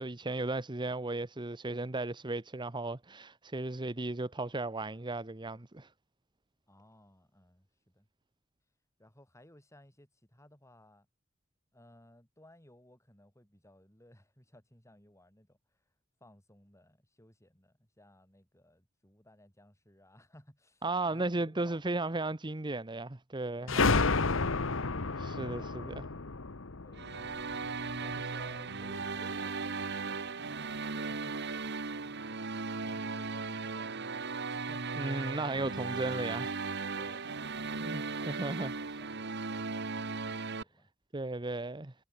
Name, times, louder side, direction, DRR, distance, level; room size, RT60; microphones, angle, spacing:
voice 1, 0.0-5.9 20.8-24.3 25.2-25.9 35.0-36.6 37.8-39.0 41.1-41.9, right 2 dB, 25° right, 1.0 m, -35 dB
voice 2, 6.7-8.1 9.0-11.1 11.7-15.8 16.2-21.9 26.8-27.4 28.0-31.6 31.9-35.3 37.0-40.9, left 1 dB, 15° left, 7.8 m, -60 dB
sound 1, 23.7-28.1, left 4 dB, 75° left, 1.2 m, -31 dB
sound 2, 26.9-40.6, right 4 dB, 55° right, 1.8 m, -37 dB
head